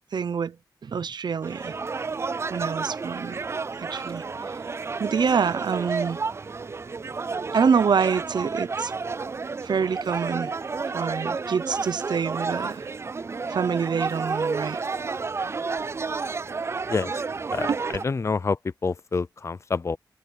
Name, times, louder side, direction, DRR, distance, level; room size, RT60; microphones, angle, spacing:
voice 1, 0.1-0.6 0.8-1.8 2.5-3.4 3.8-4.6 5.0-6.2 7.5-8.9 9.6-10.5 10.9-12.9 13.5-14.8 17.7-17.8, right 6 dB, 70° right, 0.7 m, -26 dB
sound 1, 1.4-18.0, right 4 dB, 35° right, 0.3 m, -31 dB
voice 2, 18.0-20.0, left 4 dB, 40° left, 0.5 m, -27 dB
wide cardioid pair, 100°, 8 cm